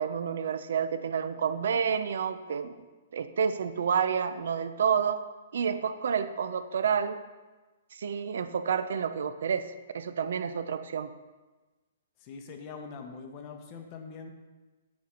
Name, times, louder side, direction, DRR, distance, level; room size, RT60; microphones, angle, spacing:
voice 1, 0.0-2.7 3.1-5.2 5.5-7.2 7.9-11.1, right 7 dB, 70° right, 11 dB, 0.5 m, -29 dB
voice 2, 12.2-14.3, left 5 dB, 30° left, 4 dB, 0.7 m, -43 dB
8.5 x 4.3 x 5.1 m, 1.2 s
hypercardioid pair, 165°, 0 cm